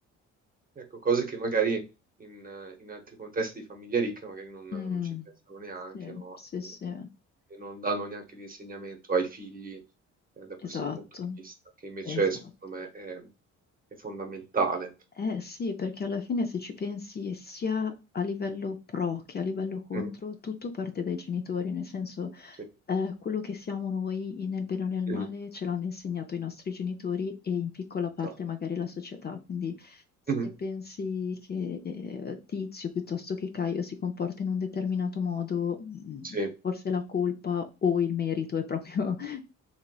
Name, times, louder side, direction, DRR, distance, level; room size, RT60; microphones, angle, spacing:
voice 1, 0.8-1.8 2.2-4.8 5.5-6.4 7.5-9.8 10.4-10.8 11.4-11.5 11.8-13.3 14.0-14.9 19.9-20.1 25.1-25.3 30.3-30.5 36.2-36.5, right 4 dB, 30° right, 5 dB, 0.8 m, -32 dB
voice 2, 4.7-5.3 5.9-7.1 10.6-11.4 12.0-12.2 15.2-22.6 22.9-30.0 30.6-36.4 36.6-39.5, left 6 dB, 35° left, 5 dB, 0.5 m, -32 dB
3.0 x 2.9 x 2.2 m, 0.28 s
cardioid pair, 90°, 30 cm